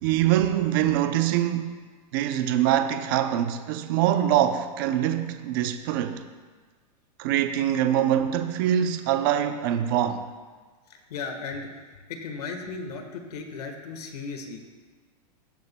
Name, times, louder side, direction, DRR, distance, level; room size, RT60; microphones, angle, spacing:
voice 1, 0.0-1.8 2.1-6.3 7.2-10.3, right 11 dB, 35° right, 0.5 m, -24 dB
voice 2, 10.9-14.6, left 4 dB, 70° left, 1.5 m, -36 dB
17.5 x 7.0 x 2.2 m
supercardioid pair, 170°, 21 cm